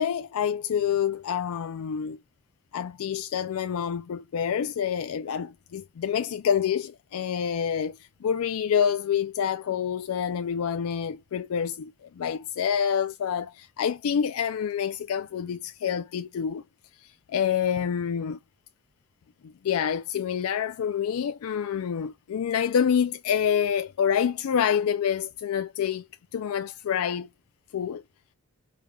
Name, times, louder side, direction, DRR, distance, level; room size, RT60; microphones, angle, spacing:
voice 1, 0.0-2.2 2.7-16.6 17.0-18.4 19.4-27.3 27.7-28.0, left 8 dB, 85° left, 0.4 m, -27 dB
4.9 x 2.3 x 3.1 m
head